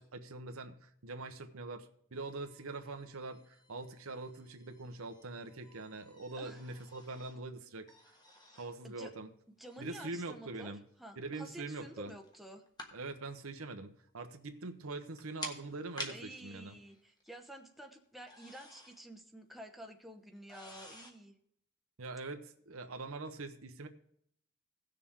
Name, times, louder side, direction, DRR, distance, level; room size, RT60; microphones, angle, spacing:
voice 1, 0.0-7.9 8.6-9.3 9.8-10.8 11.2-12.1 12.9-16.8 22.0-23.9, right 3 dB, 75° right, 7 dB, 1.0 m, -43 dB
sound 1, 2.1-7.4 7.9-8.8 9.6-10.0 11.8-12.9 13.3-13.4 14.7-14.8 15.0-17.7 18.0-19.1 19.4-19.5 20.4-21.1, left 2 dB, 20° left, 1.5 m, -51 dB
voice 2, 9.6-10.7 11.0-12.6 16.1-21.4, right 1 dB, ahead, 3 dB, 0.9 m, -50 dB
17.0 x 6.7 x 3.7 m, 0.67 s
head